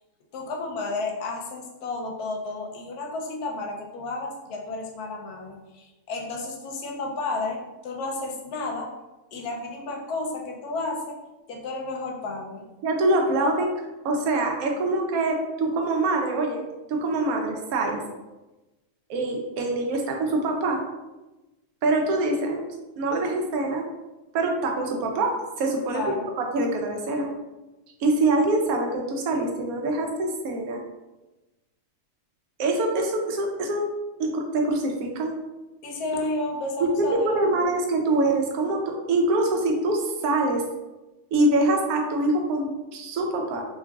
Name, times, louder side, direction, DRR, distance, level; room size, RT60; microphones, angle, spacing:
voice 1, 0.3-8.9 9.3-11.2 11.5-12.7 25.9-26.3 35.8-37.7, left 2 dB, 80° left, 1 dB, 1.1 m, -32 dB
voice 2, 12.8-13.7 14.0-16.6 16.9-18.0 19.1-20.8 21.8-22.6 23.0-23.8 24.3-27.3 28.0-30.8 32.6-33.9 34.2-35.3 37.0-40.6 41.3-43.7, right 2 dB, 70° right, 2 dB, 1.0 m, -24 dB
3.6 x 3.0 x 2.3 m, 1.1 s
omnidirectional pair, 1.7 m